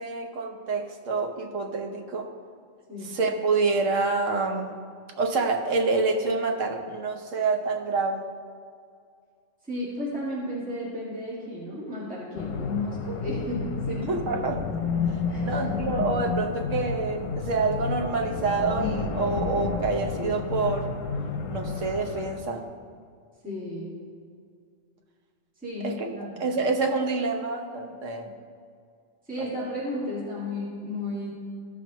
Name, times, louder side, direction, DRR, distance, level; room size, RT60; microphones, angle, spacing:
voice 1, 0.0-2.3 3.0-4.7 5.2-8.2 14.0-14.8 15.4-20.9 21.5-22.7 25.8-26.1 26.4-28.3 29.4-29.6, right 3 dB, 75° right, 3 dB, 1.2 m, -27 dB
voice 2, 9.7-14.0 14.9-15.9 23.4-23.9 25.6-25.9 26.3-26.6 29.3-31.3, left 1 dB, 5° right, -8 dB, 1.9 m, -33 dB
sound 1, 12.4-22.4, left 4 dB, 75° left, 1.1 m, -31 dB
14.5 x 6.1 x 3.0 m, 2.3 s
omnidirectional pair, 1.3 m